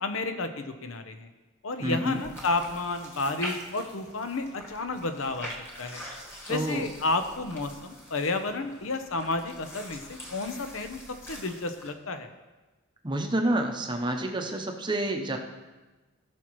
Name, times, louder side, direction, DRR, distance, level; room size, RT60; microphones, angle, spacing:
voice 1, 0.0-1.3 1.6-5.5 5.8-6.0 6.5-11.0 11.3-12.3, left 3 dB, 75° left, 7 dB, 0.8 m, -31 dB
voice 2, 1.8-2.2 6.5-6.9 13.0-15.4, right 1 dB, 20° right, 4 dB, 0.8 m, -28 dB
sound 1, 2.1-11.9, equal, 10° left, 1.5 m, -44 dB
17.5 x 6.1 x 3.1 m, 1.2 s
head